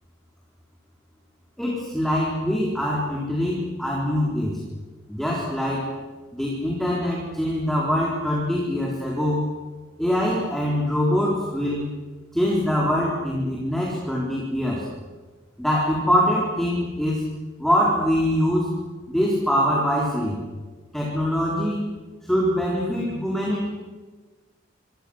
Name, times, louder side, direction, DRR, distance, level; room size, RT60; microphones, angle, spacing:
voice 1, 1.6-4.6 5.1-5.9 6.3-9.4 10.0-11.9 12.3-14.8 15.6-17.2 17.6-18.7 19.1-20.4 20.9-21.9 22.2-23.7, equal, ahead, -4 dB, 4.2 m, -23 dB
27.0 x 25.5 x 6.5 m, 1.3 s
head